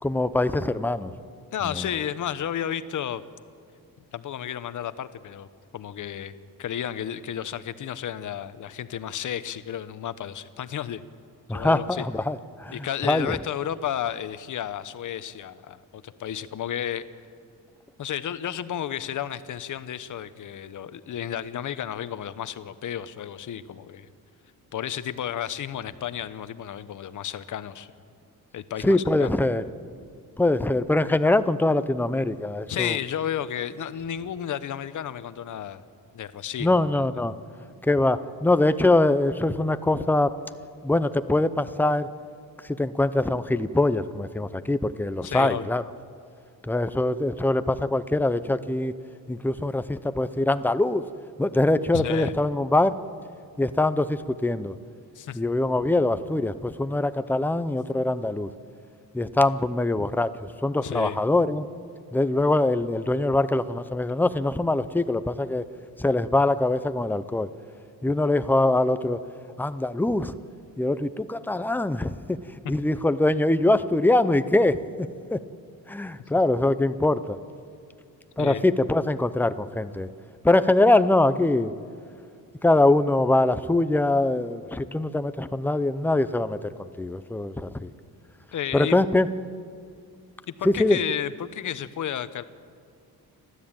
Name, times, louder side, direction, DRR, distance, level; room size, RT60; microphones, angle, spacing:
voice 1, 0.0-1.1 1.6-1.9 11.5-13.4 28.8-29.6 30.4-33.0 36.6-37.4 37.8-40.3 40.8-42.1 42.6-45.8 46.6-48.9 49.3-51.0 51.4-53.0 53.6-54.7 55.3-58.5 59.1-61.7 62.1-65.6 66.0-67.5 68.0-69.2 69.6-70.4 70.8-75.4 75.9-77.4 78.4-80.1 80.4-81.7 82.6-87.9 88.7-89.3 90.6-91.0, left 2 dB, 5° left, 12 dB, 0.6 m, -23 dB
voice 2, 1.5-3.2 4.1-5.5 5.7-6.3 6.6-11.0 11.5-12.0 12.7-17.0 18.0-24.1 24.7-27.9 28.5-29.3 32.7-35.8 36.1-36.8 45.2-45.7 51.9-52.3 55.1-55.4 60.8-61.2 78.4-78.6 88.5-89.0 90.6-92.4, left 10 dB, 55° left, 13 dB, 1.0 m, -32 dB
30.0 x 13.0 x 8.9 m, 2.3 s
cardioid pair, 145°, 37 cm